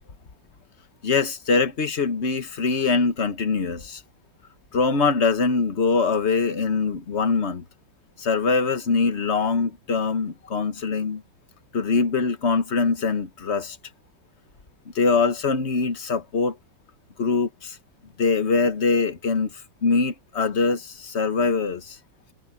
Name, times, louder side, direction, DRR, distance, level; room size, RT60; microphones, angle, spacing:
voice 1, 1.0-4.0 4.7-7.6 8.2-11.2 11.7-13.8 14.9-16.6 17.2-17.8 18.2-19.5 19.8-22.0, left 4 dB, 40° left, 1.5 m, -23 dB
omnidirectional pair, 2.1 m